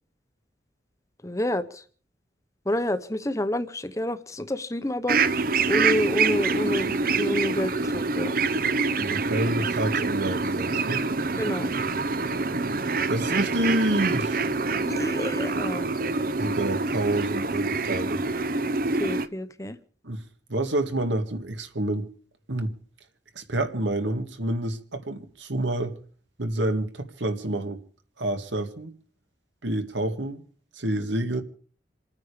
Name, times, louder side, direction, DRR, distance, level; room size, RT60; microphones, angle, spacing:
voice 1, 1.2-1.8 2.7-5.2 5.7-8.3 11.4-11.7 14.7-15.9 19.0-19.8, left 1 dB, 15° left, 0.9 m, -28 dB
sound 1, 5.1-19.3, right 4 dB, 50° right, 0.7 m, -26 dB
voice 2, 8.9-11.0 13.1-14.4 16.4-18.2 20.0-20.2 20.5-22.1 22.5-22.7 23.4-26.0 26.4-27.8 28.2-28.9 29.6-30.4 30.8-31.4, right 1 dB, 85° right, 2.0 m, -28 dB
28.5 x 9.6 x 5.0 m
head